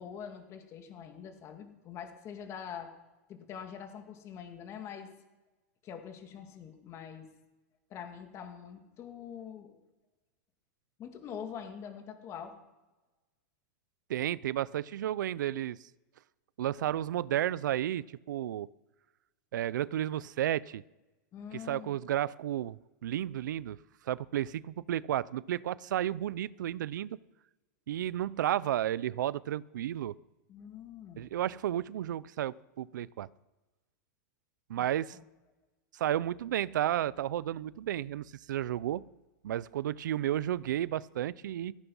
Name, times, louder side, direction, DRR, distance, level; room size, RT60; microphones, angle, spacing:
voice 1, 0.0-2.9 3.3-5.1 5.8-7.3 7.9-9.8 11.0-12.6 21.3-22.0 30.5-31.3 34.8-35.2, left 8 dB, 30° left, 5 dB, 2.2 m, -44 dB
voice 2, 14.1-15.8 16.6-18.7 19.5-20.8 21.5-23.8 24.1-27.1 27.9-30.1 31.2-33.3 34.7-35.2 35.9-39.0 39.4-41.7, right 12 dB, 85° right, 20 dB, 0.6 m, -32 dB
17.0 x 15.0 x 5.5 m, 1.1 s
supercardioid pair, 150°, 10 cm